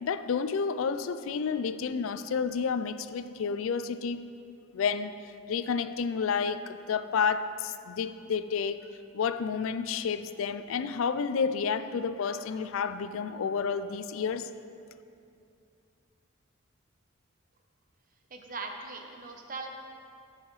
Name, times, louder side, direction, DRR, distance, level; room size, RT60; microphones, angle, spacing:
voice 1, 0.0-4.3 4.7-5.1 5.5-8.9 9.1-14.5, left 6 dB, 85° left, 12 dB, 0.4 m, -30 dB
voice 2, 18.3-19.7, right 3 dB, 45° right, 3 dB, 0.8 m, -40 dB
13.0 x 5.7 x 3.1 m, 2.5 s
head